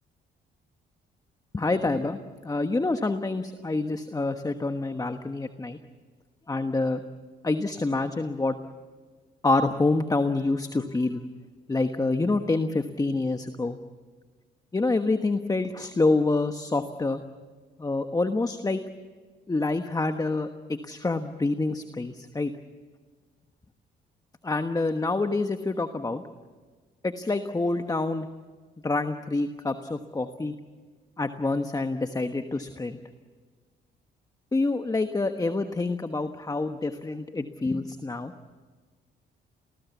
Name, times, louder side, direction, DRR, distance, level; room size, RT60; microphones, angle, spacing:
voice 1, 1.5-2.2 2.4-5.8 6.5-7.0 7.4-8.6 9.4-11.2 11.7-13.8 14.7-17.2 17.8-18.8 19.5-22.5 24.4-26.2 27.0-28.3 28.8-30.5 31.2-33.0 34.5-38.3, left 3 dB, 20° left, 8 dB, 1.2 m, -27 dB
29.0 x 19.5 x 8.3 m, 1.5 s
cardioid pair, 90°, 20 cm